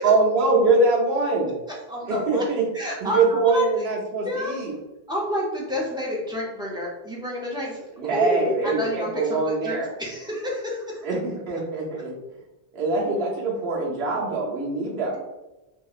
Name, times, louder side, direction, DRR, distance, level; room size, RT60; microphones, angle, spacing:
voice 1, 0.0-1.5 2.0-2.7 3.0-4.8 8.0-9.9 11.0-12.1 12.7-15.2, right 3 dB, 75° right, -3 dB, 1.0 m, -23 dB
voice 2, 1.9-2.4 2.7-3.6 4.2-4.6 5.1-11.0, left 1 dB, 5° right, -4 dB, 0.5 m, -29 dB
2.8 x 2.8 x 2.4 m, 1.0 s
omnidirectional pair, 1.0 m